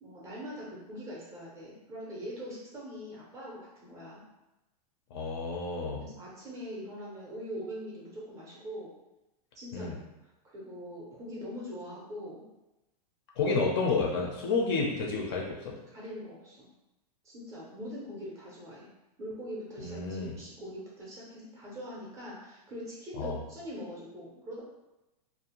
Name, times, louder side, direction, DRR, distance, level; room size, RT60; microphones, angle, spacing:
voice 1, 0.0-4.2 6.0-8.9 9.5-10.0 10.5-12.4 13.4-13.5 15.9-16.7 17.2-18.9 19.2-24.6, equal, 15° right, -6 dB, 0.5 m, -42 dB
voice 2, 5.1-6.0 9.7-10.0 13.4-15.7 19.8-20.3 23.2-23.4, left 4 dB, 40° left, -1 dB, 0.4 m, -30 dB
2.4 x 2.1 x 2.8 m, 0.97 s
supercardioid pair, 165°, 20 cm